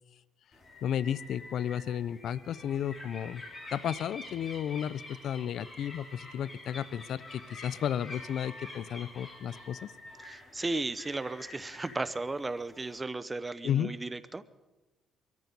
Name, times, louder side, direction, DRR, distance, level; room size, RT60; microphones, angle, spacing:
sound 1, 0.5-13.0, left 2 dB, 35° left, 3.5 m, -48 dB
voice 1, 0.8-3.4 3.7-9.9 13.6-14.0, left 9 dB, 70° left, 19 dB, 0.4 m, -33 dB
voice 2, 10.2-14.4, right 2 dB, 20° right, 14 dB, 0.7 m, -35 dB
23.0 x 13.5 x 4.0 m, 1.1 s
cardioid pair, 90°, 0 cm